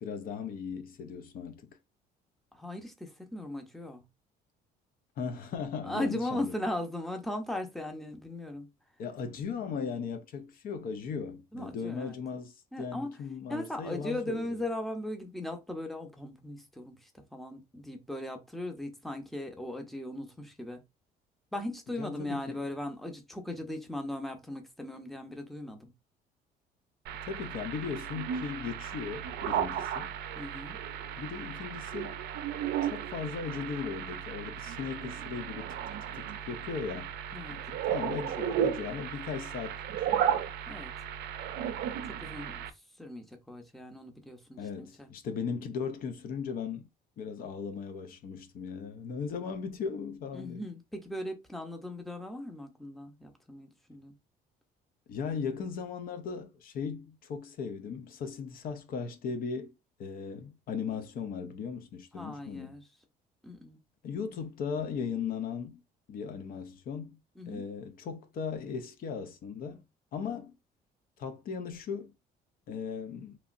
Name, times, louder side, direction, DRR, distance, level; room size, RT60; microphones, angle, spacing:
voice 1, 0.0-1.7 5.2-6.5 9.0-14.5 22.0-22.7 27.2-30.1 31.2-32.2 32.8-35.8 36.1-37.1 37.5-40.1 44.6-46.9 47.2-50.7 55.1-59.7 60.0-62.8 64.0-65.8 66.1-67.2 67.5-69.8 70.1-70.6 71.2-72.1 72.7-73.4, left 6 dB, 60° left, 0.6 m, -37 dB
voice 2, 2.5-4.0 5.8-8.7 11.5-12.2 12.7-13.1 13.5-20.8 21.5-25.9 30.4-30.8 37.3-37.6 38.9-39.0 40.7-40.9 42.2-42.6 43.0-45.1 47.4-47.5 50.3-54.1 62.1-62.8 63.4-63.8 67.4-67.6, left 1 dB, ahead, 0.7 m, -38 dB
sound 1, 27.1-42.7, right 9 dB, 70° right, 0.4 m, -35 dB
3.0 x 2.7 x 2.5 m
cardioid pair, 110°, 17 cm